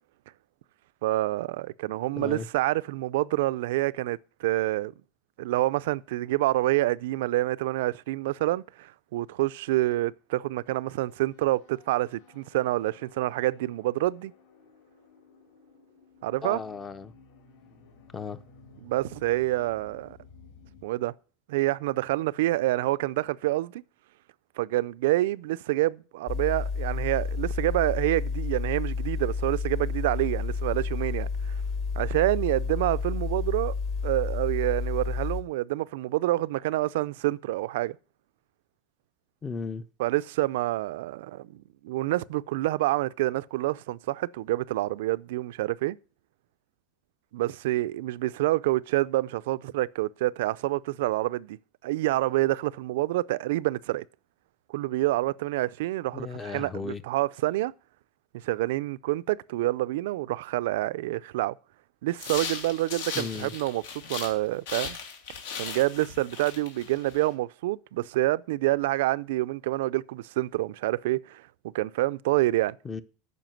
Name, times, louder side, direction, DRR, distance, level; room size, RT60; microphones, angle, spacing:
voice 1, 1.0-4.9 5.4-14.3 16.2-16.6 18.8-20.2 20.8-21.1 21.5-23.8 24.6-31.6 32.0-33.7 34.0-38.0 40.0-46.0 47.3-51.6 51.8-54.0 54.7-57.7 58.4-61.5 62.0-63.8 64.1-65.0 65.6-71.4 71.7-72.8, right 17 dB, 85° right, 0.4 m, -27 dB
voice 2, 2.2-2.5 16.4-17.1 18.1-18.4 39.4-39.8 56.1-57.0 63.1-63.5 72.8-73.0, left 5 dB, 15° left, 0.5 m, -35 dB
sound 1, 10.6-20.9, left 4 dB, 70° left, 3.5 m, -55 dB
sound 2, 26.3-35.4, left 4 dB, 45° left, 1.6 m, -30 dB
sound 3, 62.1-64.4 64.7-67.3, left 6 dB, 90° left, 2.7 m, -37 dB
9.2 x 5.7 x 7.6 m
supercardioid pair, 165°, 0 cm